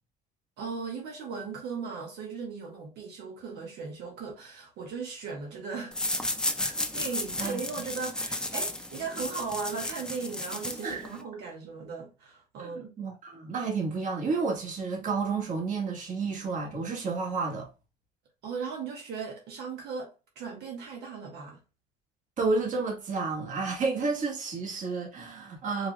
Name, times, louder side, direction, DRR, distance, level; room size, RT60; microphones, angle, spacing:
voice 1, 0.6-6.0 6.6-12.9 18.4-21.6, right 5 dB, 80° right, 1.4 m, -37 dB
sound 1, 5.9-11.2, left 1 dB, 5° left, 0.6 m, -33 dB
voice 2, 12.6-17.7 22.4-25.9, right 4 dB, 50° right, 1.7 m, -31 dB
4.6 x 3.4 x 2.2 m
cardioid pair, 110°, 17 cm